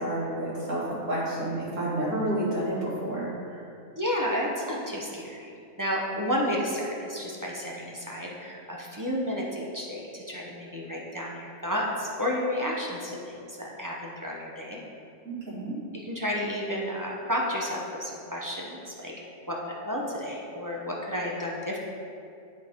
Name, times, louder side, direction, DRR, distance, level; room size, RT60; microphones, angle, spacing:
voice 1, 0.0-3.6 15.2-15.8, right 1 dB, 65° right, -8 dB, 2.3 m, -30 dB
voice 2, 4.0-5.5 5.8-14.8 16.0-19.1 19.5-21.8, equal, 20° right, -3 dB, 0.5 m, -31 dB
10.5 x 4.1 x 3.6 m, 2.5 s
omnidirectional pair, 1.4 m